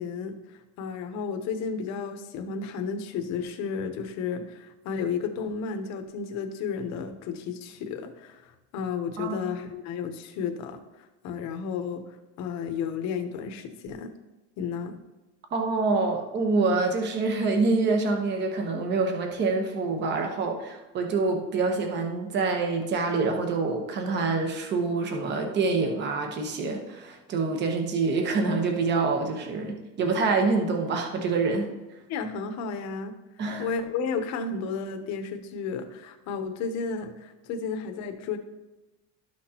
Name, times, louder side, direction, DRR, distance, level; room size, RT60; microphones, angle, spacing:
voice 1, 0.0-10.8 11.2-12.0 12.4-14.1 14.6-14.9 32.1-33.1 33.6-38.4, left 5 dB, 55° left, 7 dB, 0.9 m, -32 dB
voice 2, 15.5-31.7 33.4-33.7, right 3 dB, 30° right, 3 dB, 1.0 m, -26 dB
12.5 x 6.1 x 2.9 m, 1.1 s
cardioid pair, 175°, 34 cm